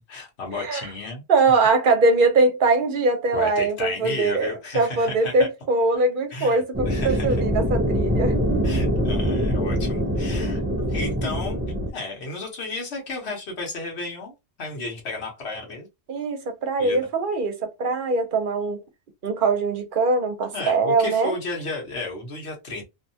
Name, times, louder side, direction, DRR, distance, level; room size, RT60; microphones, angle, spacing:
voice 1, 0.1-1.2 3.3-5.5 6.3-7.4 8.6-10.6 10.9-11.6 11.9-14.3 14.6-15.9 16.8-17.1 20.5-22.8, left 3 dB, 70° left, 1.2 m, -33 dB
voice 2, 1.3-8.4 16.1-18.8 19.2-21.4, right 3 dB, 55° right, 0.7 m, -22 dB
sound 1, 6.7-11.9, equal, 20° right, 0.3 m, -24 dB
2.7 x 2.2 x 2.7 m
omnidirectional pair, 1.1 m